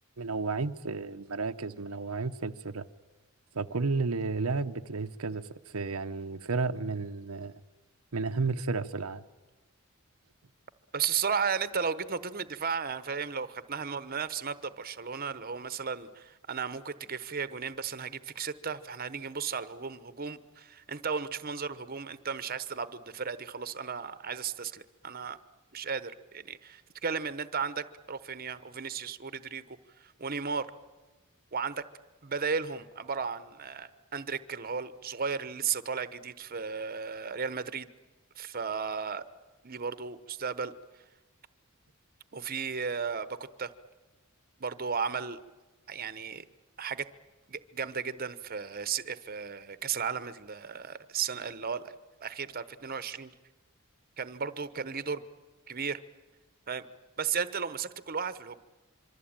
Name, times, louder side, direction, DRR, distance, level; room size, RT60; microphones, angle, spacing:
voice 1, 0.2-2.9 3.5-7.5 8.1-9.2, right 4 dB, 80° right, 0.9 m, -32 dB
voice 2, 10.9-25.4 25.7-30.7 31.5-31.8 32.2-37.9 38.4-39.3 39.6-40.7 42.3-43.7 44.6-45.4 45.9-46.4 46.8-47.1 47.5-51.9 52.2-53.3 54.2-55.2 55.7-56.0 56.7-56.9 57.2-58.6, right 6 dB, 45° right, 1.0 m, -35 dB
25.5 x 24.5 x 8.9 m
head